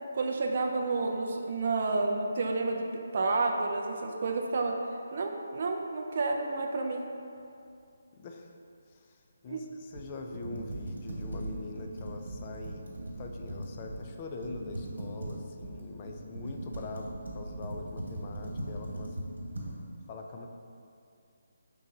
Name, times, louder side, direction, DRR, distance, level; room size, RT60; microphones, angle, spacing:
voice 1, 0.1-4.8 5.1-7.1 9.5-9.6, right 3 dB, 50° right, 2 dB, 0.3 m, -30 dB
voice 2, 8.1-8.5 8.9-12.8 13.2-19.2 20.1-20.5, left 3 dB, 30° left, 3 dB, 0.3 m, -43 dB
Computer keyboard, 9.9-14.1 14.4-19.7, right 1 dB, 80° right, 1.3 m, -39 dB
5.3 x 3.8 x 2.6 m, 2.5 s
figure-of-eight pair, 160°, 0 cm